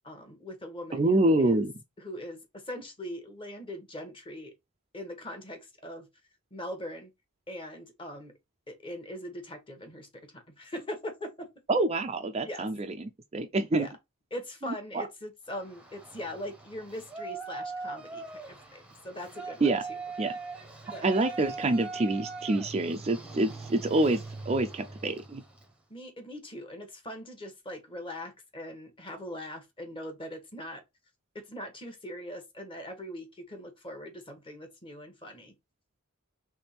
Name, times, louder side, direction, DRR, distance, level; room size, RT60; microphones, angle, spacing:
voice 1, 0.0-1.7 2.0-4.5 4.9-6.1 6.5-7.1 7.5-8.3 8.7-11.5 12.4-12.7 13.7-13.9 14.3-20.0 20.9-21.1 25.9-30.8 31.5-35.5, left 1 dB, 25° left, 1.1 m, -41 dB
voice 2, 0.9-1.7 11.7-12.8 13.0-13.9 14.9-15.0 19.6-19.8 20.2-20.3 21.0-25.4, right 2 dB, 30° right, 0.4 m, -26 dB
Yell, 15.5-25.7, right 4 dB, 5° right, 0.8 m, -41 dB
3.5 x 3.3 x 4.2 m
head